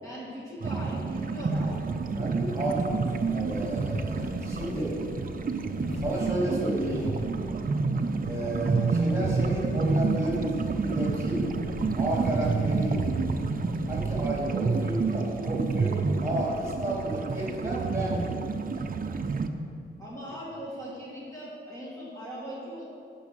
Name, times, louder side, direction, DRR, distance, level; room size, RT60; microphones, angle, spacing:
voice 1, 0.0-1.8 20.0-22.9, equal, 15° left, -7 dB, 2.3 m, -39 dB
sound 1, 0.6-19.5, right 4 dB, 45° right, 0.7 m, -29 dB
sound 2, 1.9-14.6, left 4 dB, 65° left, 0.7 m, -44 dB
voice 2, 2.2-4.9 6.0-7.2 8.2-11.4 12.0-13.0 13.9-18.2, right 1 dB, 15° right, -5 dB, 3.3 m, -32 dB
16.0 x 6.2 x 6.4 m, 2.6 s
wide cardioid pair, 140°, 21 cm